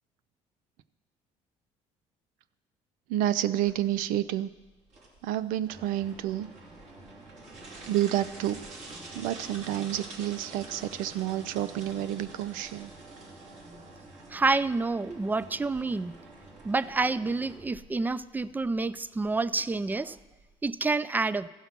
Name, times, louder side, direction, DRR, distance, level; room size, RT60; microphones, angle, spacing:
voice 1, 3.1-4.5 5.2-6.5 7.9-8.6 9.1-12.9, right 12 dB, 80° right, 16 dB, 0.5 m, -29 dB
sound 1, 3.7-20.7, right 2 dB, 60° right, 3.1 m, -47 dB
voice 2, 14.3-16.1 16.6-20.2 20.6-21.5, right 3 dB, 15° right, 18 dB, 0.3 m, -28 dB
14.5 x 5.6 x 5.9 m, 1.2 s
supercardioid pair, 90°, 14 cm